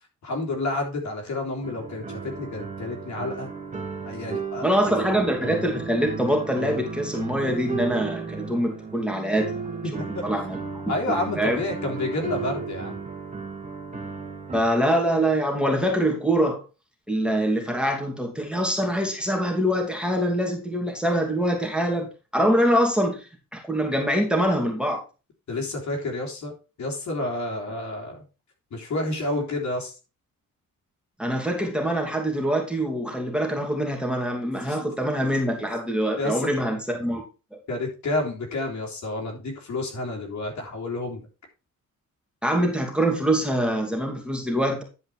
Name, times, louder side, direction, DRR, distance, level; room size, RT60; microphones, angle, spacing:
voice 1, 0.2-3.5 4.0-4.6 9.8-9.9 10.5-13.0 25.5-28.2 28.7-29.9 34.6-34.8 36.2-36.5 37.7-41.2, left 2 dB, 60° left, 0 dB, 3.5 m, -30 dB
sound 1, 1.6-14.6, right 5 dB, 25° right, 2.2 m, -34 dB
voice 2, 4.6-9.7 10.2-10.6 11.3-11.6 14.5-16.6 17.1-23.3 23.5-25.0 31.2-37.2 37.5-37.6 42.4-44.8, equal, 5° right, 1 dB, 2.8 m, -24 dB
11.0 x 5.1 x 4.6 m, 0.31 s
cardioid pair, 105°, 32 cm